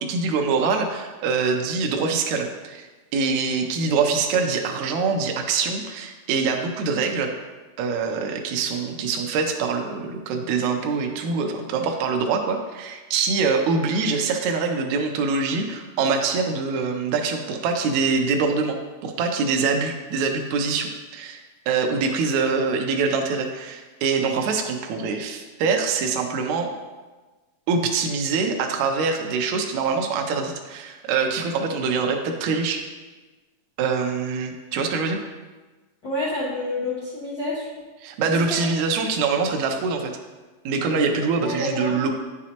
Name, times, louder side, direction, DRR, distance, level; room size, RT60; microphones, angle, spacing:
voice 1, 0.0-7.3 7.8-26.7 27.7-32.8 33.8-35.2 38.0-40.1 40.6-42.1, right 4 dB, 80° right, 3 dB, 1.7 m, -24 dB
voice 2, 36.0-37.7 38.5-38.6 41.4-42.0, left 2 dB, 50° left, -10 dB, 1.7 m, -28 dB
9.8 x 6.1 x 2.9 m, 1.2 s
omnidirectional pair, 4.0 m